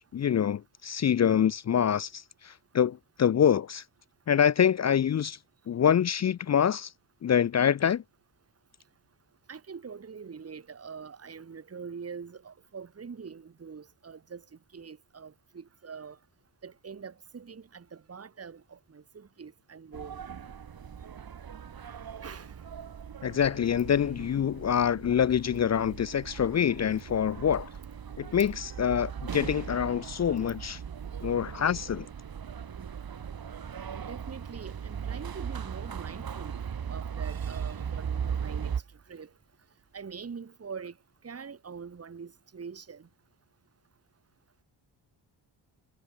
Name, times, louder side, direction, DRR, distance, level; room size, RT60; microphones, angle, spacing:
voice 1, 0.0-3.8 4.3-5.4 5.7-6.9 7.2-8.0 23.2-27.7 28.2-30.8 31.2-32.1, left 8 dB, 35° left, 0.5 m, -26 dB
voice 2, 9.5-14.4 14.7-16.2 16.6-20.2 22.2-22.5 34.0-36.6 36.9-38.7 39.1-39.3 39.9-40.9 41.2-43.1, right 6 dB, 30° right, 2.0 m, -44 dB
sound 1, 19.9-38.8, right 7 dB, 50° right, 3.6 m, -38 dB
cardioid pair, 105°, 46 cm